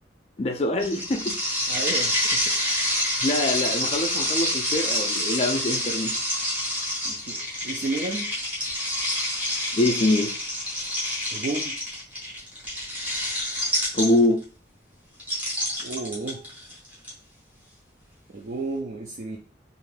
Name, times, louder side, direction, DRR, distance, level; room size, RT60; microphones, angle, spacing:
voice 1, 0.4-1.3 3.2-6.1 9.7-10.3 13.9-14.4, left 1 dB, 35° left, 3 dB, 0.4 m, -24 dB
sound 1, 0.8-14.4 15.2-17.1, left 1 dB, 10° right, 0.8 m, -27 dB
voice 2, 1.7-2.6 3.5-3.6 7.0-8.3 11.3-11.7 15.8-16.4 18.3-19.4, right 3 dB, 45° right, 0 dB, 0.3 m, -32 dB
2.5 x 2.2 x 3.2 m, 0.39 s
head